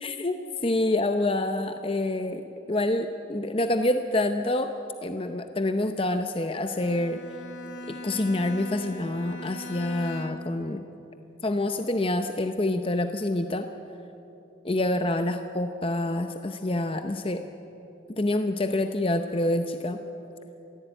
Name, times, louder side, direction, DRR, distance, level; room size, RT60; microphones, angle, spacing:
voice 1, 0.0-0.4 0.6-2.4 2.7-4.7 5.0-7.2 8.0-10.8 11.4-13.7 14.6-17.4 18.2-20.0, left 1 dB, 30° left, 7 dB, 0.7 m, -27 dB
Bowed string instrument, 6.6-10.7, left 1 dB, 75° left, 1.7 m, -40 dB
22.5 x 15.5 x 9.0 m, 3.0 s
head